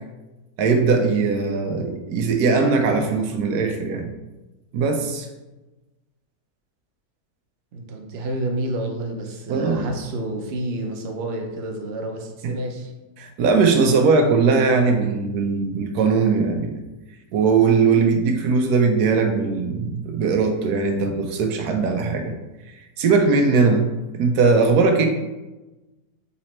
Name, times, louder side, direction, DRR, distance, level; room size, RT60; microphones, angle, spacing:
voice 1, 0.6-4.1 4.7-5.3 9.5-9.9 12.4-12.5 13.2-16.8 17.3-22.3 23.0-23.9 24.1-25.1, right 4 dB, 90° right, 4 dB, 1.2 m, -19 dB
voice 2, 7.7-12.9, right 1 dB, 55° right, 2 dB, 0.8 m, -29 dB
4.1 x 3.0 x 4.2 m, 1.1 s
omnidirectional pair, 1.6 m